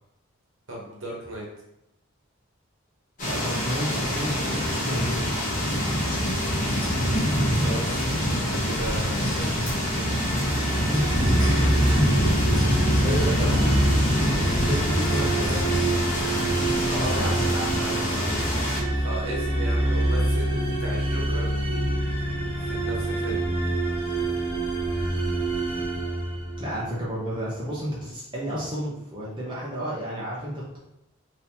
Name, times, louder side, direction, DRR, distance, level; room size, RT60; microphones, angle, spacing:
voice 1, 0.7-1.4 7.6-10.2 13.4-13.7 16.7-17.3 18.9-21.5 22.6-23.4, right 1 dB, 65° right, -3 dB, 1.1 m, -37 dB
sound 1, 3.2-18.8, equal, 40° left, 1.0 m, -25 dB
voice 2, 3.2-5.3 10.8-11.0 11.4-12.1 13.0-15.9 16.3-18.5 26.6-30.8, equal, 25° right, -7 dB, 0.6 m, -31 dB
sound 2, 9.9-27.0, right 1 dB, 10° left, 1.3 m, -26 dB
3.6 x 2.8 x 2.8 m, 0.83 s
head